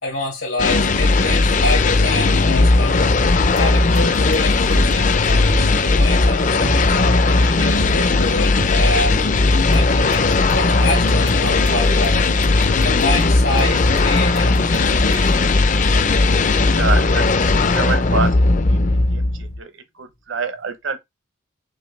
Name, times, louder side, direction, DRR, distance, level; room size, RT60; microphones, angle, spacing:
voice 1, 0.0-3.2 3.5-9.2 9.7-12.3 12.8-15.5, left 2 dB, 90° left, 2.1 m, -27 dB
sound 1, 0.6-19.6, left 3 dB, 40° left, 0.5 m, -17 dB
sound 2, 3.6-15.9, right 3 dB, 55° right, 0.4 m, -35 dB
voice 2, 16.7-17.2 17.7-18.8 19.1-19.7 20.0-21.0, right 4 dB, 70° right, 0.9 m, -26 dB
6.0 x 2.6 x 3.3 m
head